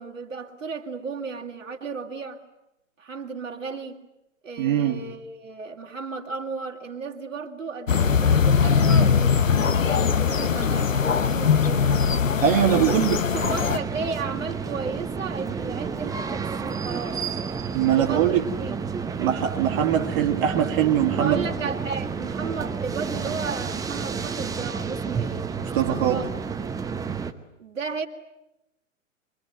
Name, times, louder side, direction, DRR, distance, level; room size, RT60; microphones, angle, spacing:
voice 1, 0.0-2.4 3.0-4.0 4.4-11.9 12.7-13.0 13.3-17.3 17.9-18.8 21.2-26.3 27.6-28.1, right 4 dB, 75° right, 2.8 m, -34 dB
voice 2, 4.6-5.0 12.4-13.2 17.7-18.5 19.2-21.4 25.6-26.2, right 10 dB, 45° right, 2.0 m, -22 dB
sound 1, 7.9-13.8, left 6 dB, 80° left, 1.2 m, -21 dB
sound 2, 13.3-27.3, right 5 dB, 10° right, 1.0 m, -30 dB
26.0 x 23.0 x 9.4 m
figure-of-eight pair, 110°, 39 cm